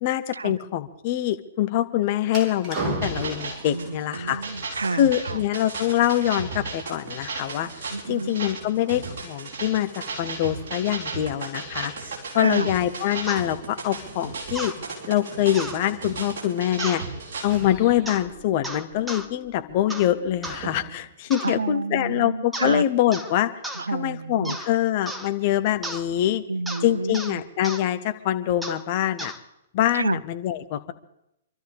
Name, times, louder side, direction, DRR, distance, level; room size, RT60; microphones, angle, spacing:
voice 1, 0.0-4.4 4.9-7.7 8.1-11.9 12.3-14.7 15.1-17.0 17.4-23.5 23.9-26.4 26.8-29.3 29.7-30.9, left 12 dB, 40° left, 1.3 m, -24 dB
sound 1, 2.3-21.2, right 3 dB, 30° right, 3.3 m, -41 dB
sound 2, 3.0-17.4, right 4 dB, 55° right, 4.6 m, -35 dB
voice 2, 3.7-5.4 7.9-8.4 12.3-12.7 21.4-22.8 23.7-24.6 26.5-27.2 29.9-30.2, right 3 dB, 75° right, 0.5 m, -29 dB
sound 3, 13.3-13.4 14.5-14.8 15.5-15.8 16.8-17.0 18.0-18.3 18.6-19.3 19.9-20.1 20.4-20.6 21.3-21.6 22.5-22.8 23.1-23.3 23.6-23.8 24.4-24.7 25.1-25.3 25.8-26.0 26.7-26.8 27.1-27.3 27.6-27.8 28.6-28.8 29.2-29.4, right 1 dB, 5° right, 1.5 m, -34 dB
27.0 x 13.0 x 3.6 m
figure-of-eight pair, 115°, 0 cm